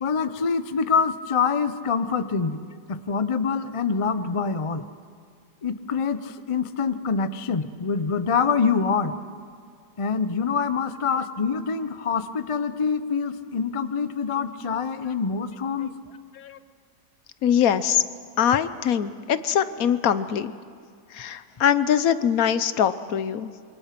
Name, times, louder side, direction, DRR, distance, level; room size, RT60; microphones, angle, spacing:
voice 1, 0.0-2.6 2.9-4.9 5.6-9.2 10.0-15.9, left 5 dB, 40° left, 11 dB, 0.4 m, -25 dB
voice 2, 17.4-18.0 18.4-20.5 21.1-23.5, left 9 dB, 65° left, 13 dB, 1.2 m, -22 dB
27.0 x 23.5 x 5.9 m, 2.2 s
omnidirectional pair, 1.7 m